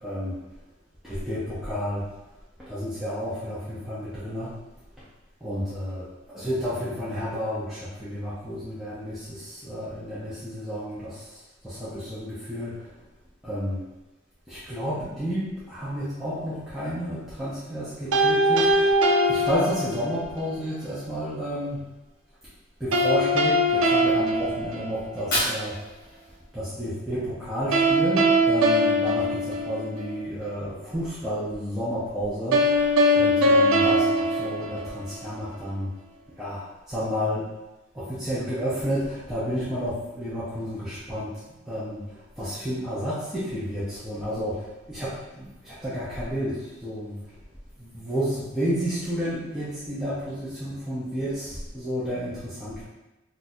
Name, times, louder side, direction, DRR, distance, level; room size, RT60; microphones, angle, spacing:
voice 1, 0.0-0.4 1.0-2.1 2.6-4.6 5.0-5.1 5.4-13.0 13.4-13.8 14.5-19.0 19.3-21.8 22.8-25.8 26.5-35.9 36.4-37.5 37.9-41.3 41.7-47.2 47.8-52.9, equal, ahead, -11 dB, 0.6 m, -31 dB
sound 1, 18.1-20.3 22.9-25.3 27.7-30.2 32.5-35.3, equal, 85° right, 0.4 m, -22 dB
Fire, 25.0-27.0, left 1 dB, 40° left, 1.1 m, -31 dB
2.6 x 2.4 x 4.1 m, 1.0 s
head